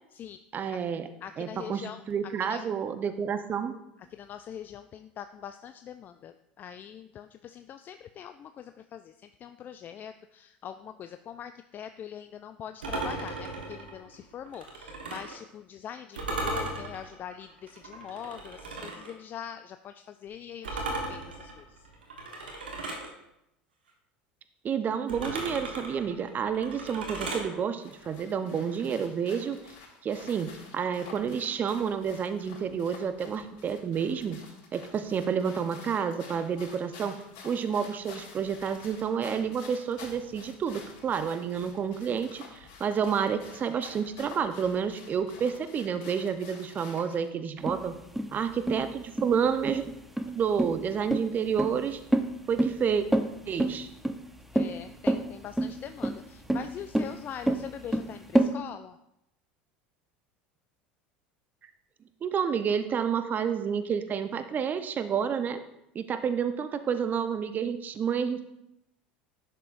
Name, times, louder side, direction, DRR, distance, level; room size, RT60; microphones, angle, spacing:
voice 1, 0.5-1.1 1.4-3.7 24.6-29.6 30.0-34.4 34.7-37.2 37.4-48.0 48.3-49.8 50.3-52.0 52.5-53.1 53.5-53.9 62.2-65.6 65.9-68.4, right 7 dB, 35° right, 9 dB, 0.8 m, -29 dB
voice 2, 1.2-2.0 2.5-2.7 4.1-21.9 54.5-59.0, left 9 dB, 40° left, 9 dB, 0.4 m, -43 dB
sound 1, 12.8-15.4 16.1-19.1 20.6-23.1 25.1-27.5, right 2 dB, 85° right, 1.3 m, -36 dB
sound 2, 27.8-47.3, left 5 dB, 55° left, 3.2 m, -50 dB
sound 3, 47.7-58.5, right 1 dB, 5° right, 0.7 m, -28 dB
10.5 x 6.7 x 2.5 m, 0.84 s
hypercardioid pair, 80°, 5 cm